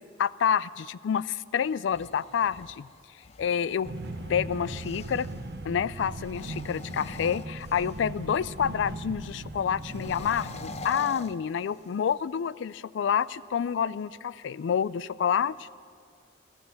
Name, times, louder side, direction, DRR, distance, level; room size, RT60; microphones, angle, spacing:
voice 1, 0.2-2.9 3.4-3.9 4.3-5.3 5.7-15.8, left 8 dB, 80° left, 20 dB, 0.3 m, -28 dB
sound 1, 1.7-5.4 6.2-8.2 9.8-12.1, left 3 dB, 35° left, 0.5 m, -44 dB
sound 2, 3.8-10.9, right 2 dB, 60° right, 0.8 m, -39 dB
15.0 x 13.5 x 7.0 m, 2.2 s
head